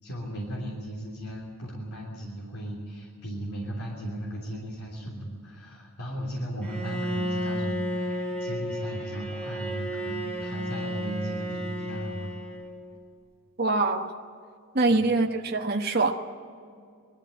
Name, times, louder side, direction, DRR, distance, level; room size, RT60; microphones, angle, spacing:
voice 1, 0.0-12.3 14.9-15.1, equal, 85° left, -3 dB, 3.3 m, -36 dB
Bowed string instrument, 6.6-12.9, equal, 5° left, 3.8 m, -33 dB
voice 2, 13.6-14.1 14.7-16.1, right 3 dB, 45° right, 3 dB, 1.1 m, -24 dB
20.5 x 13.0 x 9.7 m, 2.2 s
head